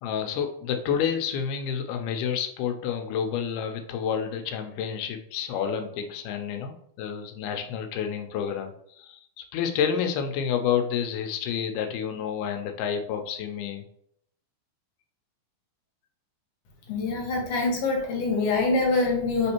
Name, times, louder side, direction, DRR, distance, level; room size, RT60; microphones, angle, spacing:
voice 1, 0.0-13.8, left 8 dB, 85° left, 5 dB, 2.1 m, -29 dB
voice 2, 16.9-19.5, left 3 dB, 70° left, 0 dB, 1.7 m, -25 dB
4.2 x 3.5 x 2.9 m, 0.70 s
omnidirectional pair, 3.6 m